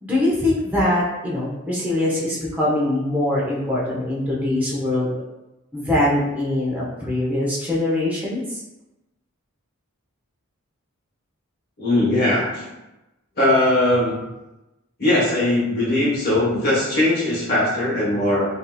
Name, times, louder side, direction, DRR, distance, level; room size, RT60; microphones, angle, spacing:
voice 1, 0.0-5.1 5.7-8.6, left 1 dB, 10° right, -6 dB, 0.7 m, -22 dB
voice 2, 11.8-12.6 13.4-14.1 15.0-18.4, left 1 dB, 45° left, -7 dB, 1.0 m, -19 dB
3.5 x 2.6 x 2.2 m, 0.99 s
head